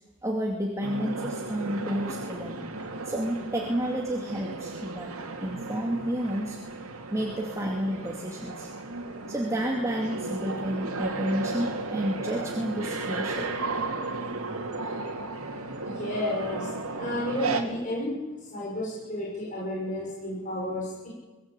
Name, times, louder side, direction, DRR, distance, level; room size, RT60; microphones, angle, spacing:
voice 1, 0.2-2.6 3.0-5.1 5.4-6.6 7.1-8.7 9.3-13.5, equal, 15° right, -1 dB, 2.5 m, -30 dB
sound 1, 0.8-17.6, right 3 dB, 85° right, 2.6 m, -34 dB
voice 2, 15.8-16.7 17.0-21.1, left 1 dB, 35° left, -5 dB, 6.6 m, -32 dB
23.5 x 17.0 x 8.4 m, 1.2 s
head